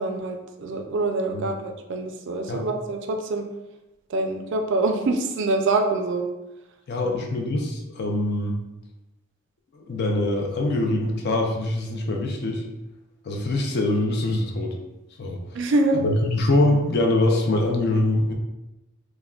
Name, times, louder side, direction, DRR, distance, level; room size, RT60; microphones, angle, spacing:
voice 1, 0.0-3.4 4.1-6.2 7.0-7.1 15.5-16.0, right 2 dB, 60° right, 4 dB, 0.3 m, -25 dB
voice 2, 6.9-8.6 9.7-12.6 13.2-14.8 15.2-15.4 15.9-18.3, left 2 dB, 50° left, 2 dB, 0.4 m, -23 dB
3.5 x 2.1 x 2.3 m, 0.99 s
head